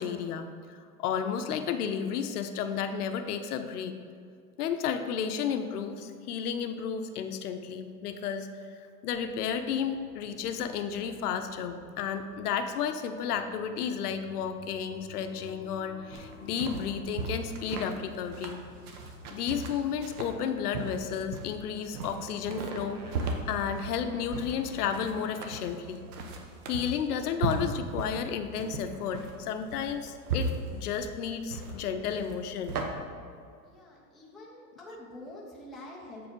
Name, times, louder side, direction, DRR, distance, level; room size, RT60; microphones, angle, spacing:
voice 1, 0.0-3.9 4.6-8.5 9.0-18.6 19.3-26.0 26.7-32.8, left 7 dB, 70° left, 8 dB, 0.8 m, -32 dB
sound 1, 9.1-26.1, left 1 dB, 25° left, 1.1 m, -52 dB
sound 2, 16.1-32.8, right 3 dB, 70° right, 1.2 m, -37 dB
voice 2, 33.6-36.3, left 1 dB, ahead, -6 dB, 0.5 m, -46 dB
7.6 x 4.8 x 5.3 m, 2.3 s
supercardioid pair, 150°, 47 cm